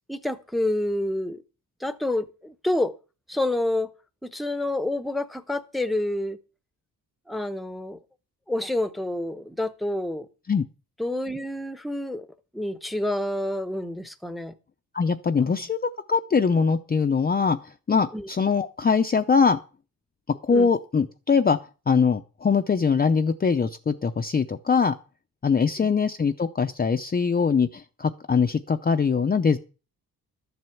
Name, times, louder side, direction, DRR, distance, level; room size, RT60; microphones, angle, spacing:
voice 1, 0.1-1.4 1.8-2.9 3.3-3.9 4.2-6.4 7.3-8.0 8.5-10.3 11.0-12.3 12.5-14.5 15.4-15.6 18.1-18.3 20.5-20.7 25.8-25.9, left 1 dB, ahead, 0.8 m, -28 dB
voice 2, 14.9-15.8 16.1-19.6 20.5-21.6 21.9-24.9 25.4-29.6, left 5 dB, 25° left, 0.6 m, -22 dB
12.5 x 7.8 x 7.1 m
wide cardioid pair, 145°, 38 cm